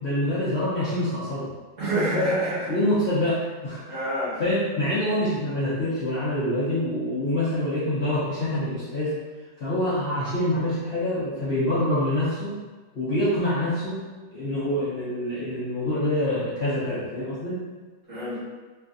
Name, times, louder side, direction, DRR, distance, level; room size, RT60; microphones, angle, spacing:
voice 1, 0.0-1.5 2.7-4.0 4.4-9.1 9.6-12.5 12.9-14.0 14.3-17.6, left 1 dB, 55° left, -12 dB, 0.8 m, -26 dB
voice 2, 1.8-2.7 3.9-4.4 18.1-18.4, right 1 dB, 45° right, -11 dB, 1.5 m, -26 dB
3.2 x 2.4 x 2.5 m, 1.3 s
omnidirectional pair, 1.9 m